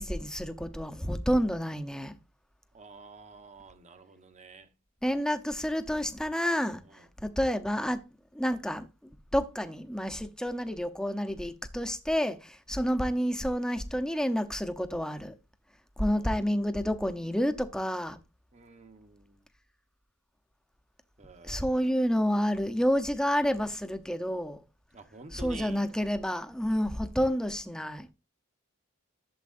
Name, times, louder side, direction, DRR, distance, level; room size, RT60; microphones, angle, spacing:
voice 1, 0.0-2.1 5.0-8.0 8.3-15.3 16.0-18.2 21.4-24.6 25.3-28.1, equal, 5° left, 0.7 m, -29 dB
voice 2, 2.7-4.7 6.9-7.1 16.0-16.4 18.5-19.4 21.2-21.9 24.9-25.8, right 3 dB, 30° right, 1.0 m, -49 dB
12.0 x 7.4 x 2.5 m
head